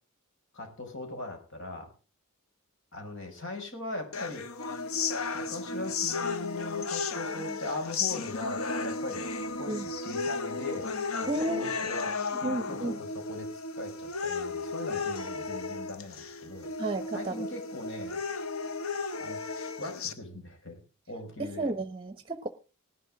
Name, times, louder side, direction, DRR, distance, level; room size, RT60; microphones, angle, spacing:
voice 1, 0.5-1.9 2.9-4.4 5.3-9.3 9.6-10.9 11.2-12.1 12.4-16.7 17.1-18.2 19.2-19.5 19.8-20.8 21.1-21.7, left 2 dB, 65° left, 4 dB, 5.9 m, -40 dB
sound 1, 4.1-20.1, left 4 dB, 80° left, 1.2 m, -34 dB
voice 2, 11.3-12.9 16.8-17.4 21.4-22.5, right 2 dB, 25° right, 9 dB, 1.1 m, -33 dB
19.0 x 12.0 x 3.7 m, 0.34 s
head